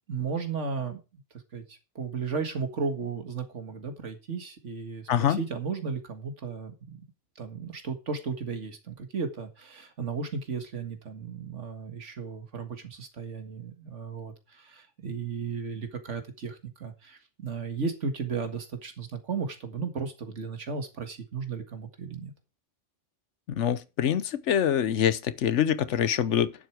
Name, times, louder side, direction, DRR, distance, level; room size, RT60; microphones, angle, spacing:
voice 1, 0.1-1.0 1.5-6.7 7.4-22.3, right 5 dB, 80° right, 2.1 m, -35 dB
voice 2, 5.1-5.4 23.5-26.5, left 9 dB, 75° left, 1.1 m, -25 dB
11.0 x 7.7 x 4.8 m
omnidirectional pair, 1.2 m